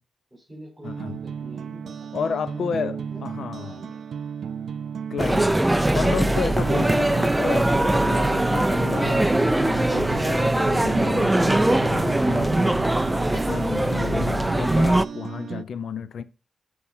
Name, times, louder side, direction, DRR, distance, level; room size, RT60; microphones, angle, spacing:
voice 1, 0.3-3.3 3.6-4.0, right 1 dB, 5° left, 4.6 m, -45 dB
voice 2, 0.8-1.2 2.1-3.8 5.1-5.6 5.9-9.4 9.6-12.7 13.3-16.2, left 6 dB, 70° left, 0.5 m, -31 dB
sound 1, 0.8-15.6, right 6 dB, 70° right, 0.5 m, -33 dB
sound 2, 5.2-15.0, right 1 dB, 10° right, 0.3 m, -21 dB
12.5 x 4.7 x 2.7 m
cardioid pair, 90°, 0 cm